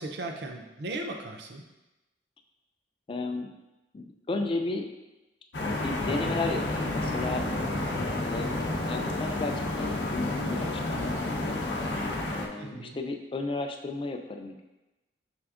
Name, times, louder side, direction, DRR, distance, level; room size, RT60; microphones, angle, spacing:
voice 1, 0.0-1.6 12.6-13.0, right 2 dB, 65° right, 3 dB, 0.5 m, -37 dB
voice 2, 3.1-3.5 3.9-4.9 5.8-7.5 8.2-11.6 12.4-14.6, left 3 dB, 30° left, 4 dB, 0.3 m, -34 dB
sound 1, 5.5-12.5, left 2 dB, 75° left, 0.6 m, -30 dB
6.1 x 3.4 x 2.4 m, 1.0 s
head